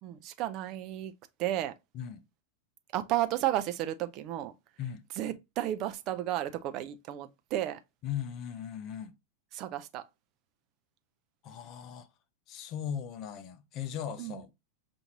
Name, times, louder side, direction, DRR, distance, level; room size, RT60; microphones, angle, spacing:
voice 1, 0.0-1.1 1.4-1.7 2.9-4.5 5.1-7.8 9.5-10.0 14.2-14.5, right 13 dB, 40° right, 0.5 m, -33 dB
voice 2, 8.0-9.1 11.4-12.1 12.5-14.5, left 9 dB, 35° left, 0.6 m, -38 dB
5.7 x 2.6 x 2.7 m
figure-of-eight pair, 90°, 0 cm